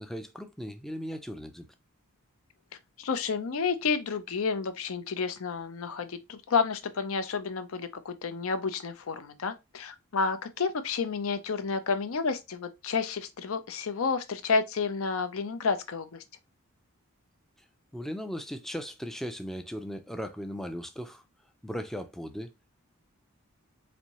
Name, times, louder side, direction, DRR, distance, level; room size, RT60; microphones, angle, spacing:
voice 1, 0.0-1.7 17.9-21.2 21.6-22.5, equal, ahead, 0.3 m, -37 dB
voice 2, 3.0-16.1, left 5 dB, 70° left, 0.6 m, -30 dB
4.2 x 2.7 x 2.9 m
head